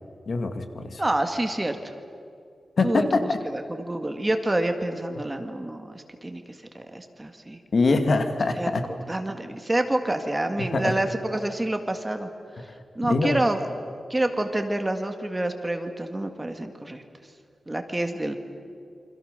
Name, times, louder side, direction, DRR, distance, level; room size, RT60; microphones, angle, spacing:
voice 1, 0.3-1.0 2.8-3.4 7.7-8.9 10.6-10.9 12.6-12.7 13.0-13.4, left 3 dB, 50° left, 7 dB, 2.1 m, -24 dB
voice 2, 1.0-1.9 2.8-3.0 3.4-6.4 6.7-7.6 8.5-12.3 13.0-13.6 14.1-17.0 17.7-18.4, right 1 dB, 15° right, 6 dB, 1.9 m, -28 dB
28.5 x 26.0 x 6.7 m, 2.4 s
wide cardioid pair, 135°, 0 cm